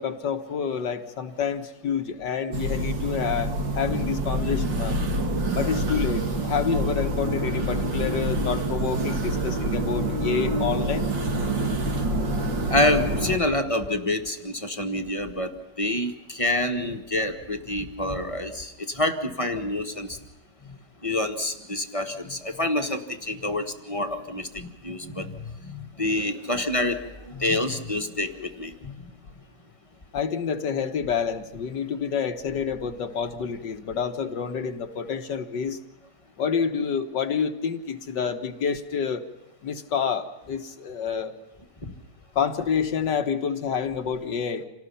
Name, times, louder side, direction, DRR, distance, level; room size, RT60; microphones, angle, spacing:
voice 1, 0.0-5.0 5.5-11.1 30.1-35.8 36.4-39.2 39.6-41.3 42.4-44.6, left 6 dB, 75° left, 6 dB, 1.9 m, -28 dB
sound 1, 2.5-13.4, right 1 dB, 85° right, 3.0 m, -26 dB
voice 2, 12.7-20.2 21.0-28.9 41.8-41.9, left 1 dB, 20° left, 5 dB, 1.5 m, -27 dB
27.5 x 18.5 x 5.7 m, 0.99 s
omnidirectional pair, 2.0 m